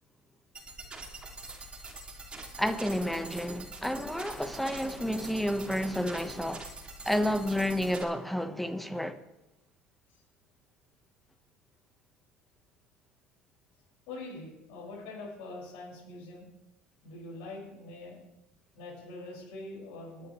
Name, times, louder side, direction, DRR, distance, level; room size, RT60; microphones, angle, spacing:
sound 1, 0.6-8.0, right 3 dB, 25° right, 2.6 m, -45 dB
voice 1, 2.6-6.7 7.0-9.2, equal, 5° left, 1.2 m, -30 dB
voice 2, 14.1-16.4 17.0-18.2 18.8-20.3, left 2 dB, 75° left, 5.8 m, -43 dB
20.0 x 10.0 x 3.2 m
supercardioid pair, 95°, 4 cm